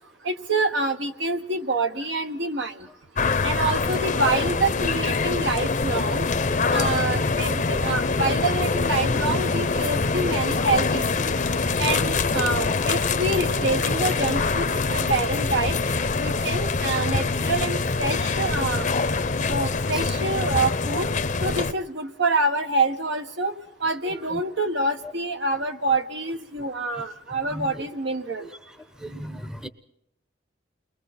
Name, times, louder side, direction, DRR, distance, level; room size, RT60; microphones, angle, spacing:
voice 1, 0.2-2.9 3.4-6.3 6.7-11.3 11.8-15.8 16.2-18.9 19.5-21.1 21.4-23.5 23.8-28.5, right 2 dB, 70° right, 6 dB, 1.5 m, -26 dB
sound 1, 3.2-21.7, left 4 dB, 45° left, 0.8 m, -24 dB
voice 2, 18.4-18.8 24.3-24.4 25.0-25.1 27.5-27.8 29.0-29.7, equal, 5° right, 9 dB, 0.9 m, -37 dB
29.5 x 22.0 x 4.3 m, 0.82 s
head